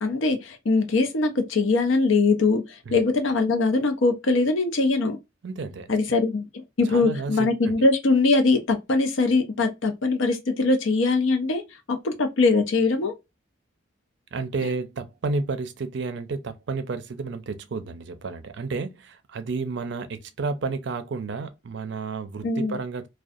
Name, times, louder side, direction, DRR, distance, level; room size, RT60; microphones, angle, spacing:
voice 1, 0.0-2.6 2.9-5.2 5.9-6.4 6.8-11.6 11.9-13.1 22.4-22.7, left 3 dB, 80° left, 0.6 m, -22 dB
voice 2, 5.4-6.2 6.8-7.7 14.3-23.1, right 4 dB, 60° right, 0.4 m, -31 dB
2.4 x 2.2 x 2.6 m
head